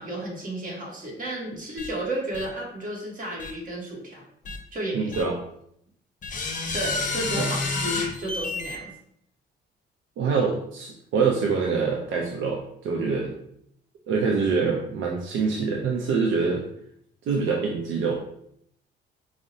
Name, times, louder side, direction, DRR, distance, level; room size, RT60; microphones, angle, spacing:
voice 1, 0.0-4.2 4.7-5.1 6.7-8.9, right 1 dB, 45° right, -2 dB, 1.2 m, -32 dB
sound 1, 1.8-1.9 2.3-2.5 3.4-3.5 4.4-4.6 5.1-5.2 6.2-8.8, left 3 dB, 40° left, 0.6 m, -29 dB
voice 2, 4.9-5.4 7.4-7.5 10.2-13.3 14.1-16.6 17.2-18.1, right 5 dB, 80° right, 0 dB, 0.5 m, -25 dB
4.7 x 2.0 x 2.7 m, 0.71 s
cardioid pair, 90°, 20 cm